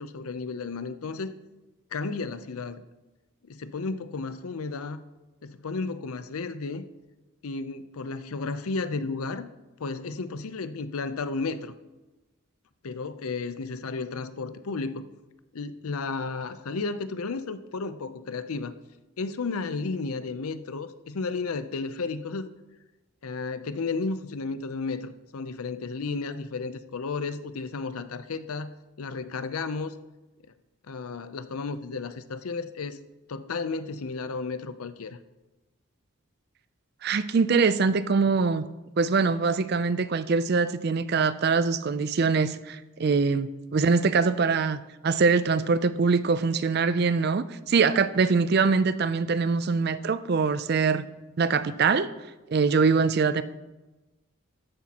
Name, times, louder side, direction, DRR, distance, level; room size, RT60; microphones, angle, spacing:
voice 1, 0.0-1.4 1.9-2.8 3.4-5.0 5.4-6.9 7.4-9.5 9.8-11.7 12.8-15.1 15.5-18.7 19.2-22.5 23.2-28.7 29.0-29.9 30.9-33.0 33.3-35.2, left 4 dB, 85° left, 12 dB, 0.6 m, -33 dB
voice 2, 37.0-38.6 39.0-51.1 51.4-52.1 52.5-53.4, right 4 dB, 45° right, 14 dB, 0.4 m, -23 dB
13.0 x 10.0 x 2.9 m, 1.1 s
head